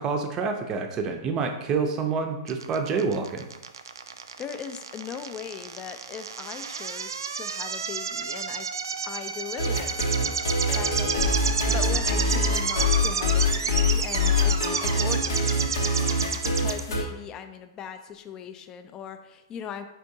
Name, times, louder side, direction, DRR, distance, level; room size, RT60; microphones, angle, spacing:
voice 1, 0.0-3.5, right 5 dB, 30° right, 5 dB, 0.5 m, -27 dB
sound 1, 2.5-16.8, right 6 dB, 85° right, 0.3 m, -31 dB
voice 2, 4.4-8.7 9.1-15.9 16.2-19.8, left 8 dB, 30° left, 9 dB, 0.4 m, -39 dB
sound 2, 9.6-17.0, left 2 dB, 80° left, 0.8 m, -25 dB
4.4 x 3.5 x 2.7 m, 0.96 s
hypercardioid pair, 125°, 2 cm